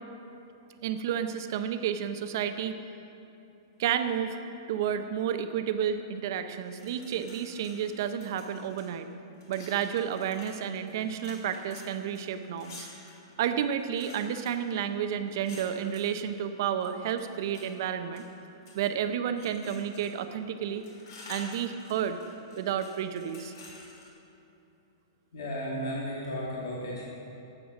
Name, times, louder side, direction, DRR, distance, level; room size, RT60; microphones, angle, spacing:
voice 1, 0.8-2.8 3.8-9.1 9.5-12.9 13.4-18.3 18.7-20.8 21.3-22.2 22.6-23.5, right 8 dB, 55° right, 9 dB, 0.8 m, -31 dB
sound 1, 6.6-8.9 9.4-16.2 16.8-17.7 18.1-18.9 19.4-20.3 20.6-24.1, left 2 dB, 60° left, 3.0 m, -50 dB
voice 2, 25.3-27.1, equal, 85° left, -5 dB, 2.6 m, -34 dB
12.5 x 8.2 x 6.1 m, 2.9 s
hypercardioid pair, 150°, 2 cm